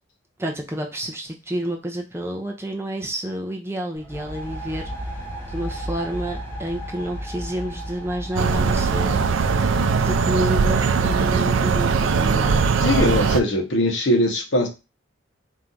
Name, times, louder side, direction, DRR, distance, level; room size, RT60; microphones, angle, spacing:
voice 1, 0.4-4.9 5.5-9.2 10.0-12.6, equal, 10° right, 0.5 m, -29 dB
sound 1, 3.9-11.7, equal, 10° left, 0.8 m, -35 dB
sound 2, 8.4-13.4, right 5 dB, 75° right, 0.4 m, -20 dB
voice 2, 12.8-14.7, left 1 dB, 65° left, 0.9 m, -20 dB
4.4 x 2.4 x 3.8 m
head